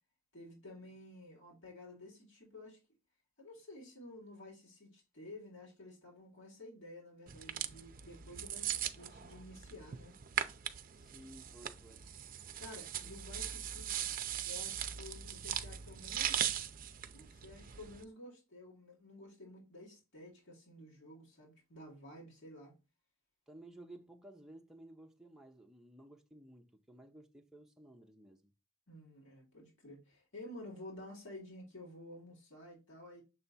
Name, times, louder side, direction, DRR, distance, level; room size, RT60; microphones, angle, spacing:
voice 1, 0.3-2.8 3.4-10.1 12.6-14.1 14.5-16.5 17.1-22.7 28.9-33.2, left 1 dB, 65° left, 2.7 m, -52 dB
sound 1, 7.3-18.0, right 10 dB, 40° right, 0.5 m, -40 dB
voice 2, 10.9-12.1 13.0-13.1 23.5-28.5, right 1 dB, ahead, 0.6 m, -56 dB
6.8 x 3.4 x 4.1 m
head